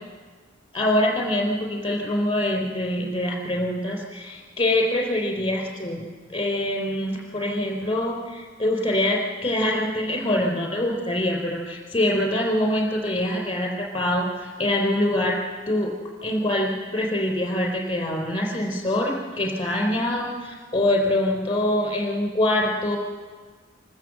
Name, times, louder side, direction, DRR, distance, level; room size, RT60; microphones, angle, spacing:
voice 1, 0.7-6.0 6.3-15.4 15.7-15.9 16.2-23.0, left 1 dB, 25° left, 0 dB, 4.3 m, -24 dB
26.0 x 13.5 x 7.9 m, 1.5 s
head